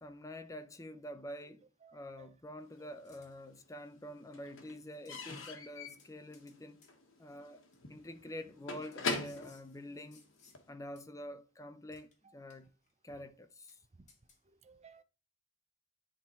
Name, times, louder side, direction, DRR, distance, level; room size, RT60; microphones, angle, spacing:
voice 1, 0.0-1.7 1.9-6.8 7.2-7.6 7.9-10.2 10.7-12.7 13.0-13.8, left 1 dB, 15° left, 0.6 m, -47 dB
voice 2, 1.8-2.3 2.8-2.9 14.0-14.1 14.5-15.0, right 5 dB, 35° right, 0.6 m, -59 dB
Slam / Squeak / Wood, 2.8-3.7 3.9-10.7, left 3 dB, 80° left, 1.3 m, -43 dB
sound 1, 3.0-3.3 4.4-4.5 5.0-5.6 6.0-6.6 6.8-6.9 7.7-7.8 8.9-10.6 11.0-11.1 11.9-12.2 12.5-12.9 13.2-13.3 13.7-13.8 14.1-14.4, left 5 dB, 35° left, 1.8 m, -65 dB
9.9 x 3.7 x 4.3 m
head